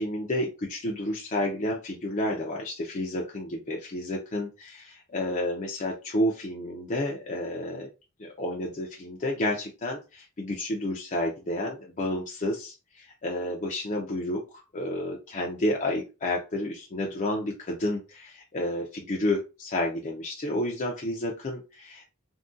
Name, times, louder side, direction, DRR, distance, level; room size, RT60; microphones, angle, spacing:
voice 1, 0.0-7.9 8.2-22.1, left 1 dB, 35° left, -1 dB, 0.5 m, -30 dB
3.6 x 2.3 x 2.6 m, 0.29 s
head